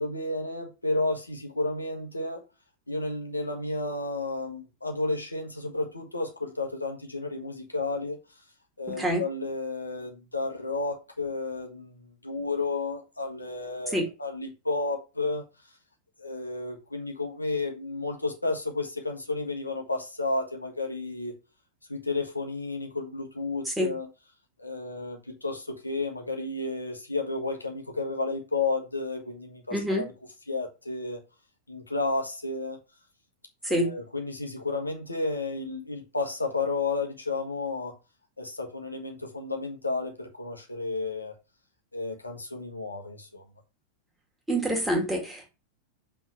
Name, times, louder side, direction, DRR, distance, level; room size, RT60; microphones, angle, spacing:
voice 1, 0.0-2.4 2.9-8.2 8.8-15.4 16.2-21.3 21.9-24.1 24.6-30.1 30.5-31.2 31.7-32.8 33.7-37.9 38.4-41.3 41.9-43.4, left 3 dB, 80° left, 1.3 m, -32 dB
voice 2, 29.7-30.1 33.6-33.9 44.5-45.5, equal, 5° right, 2.1 m, -26 dB
5.9 x 3.7 x 4.7 m
figure-of-eight pair, 90°, 0 cm